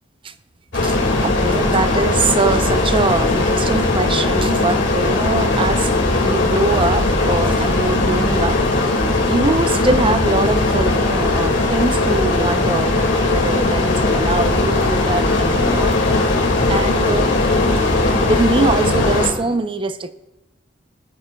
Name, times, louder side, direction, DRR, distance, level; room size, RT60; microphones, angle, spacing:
sound 1, 0.7-19.3, left 2 dB, 75° left, 2.0 m, -18 dB
voice 1, 1.2-5.9 6.2-8.9 9.3-16.0 16.7-17.3 18.1-20.1, right 3 dB, 30° right, 11 dB, 0.5 m, -22 dB
20.5 x 8.2 x 2.2 m, 1.0 s
head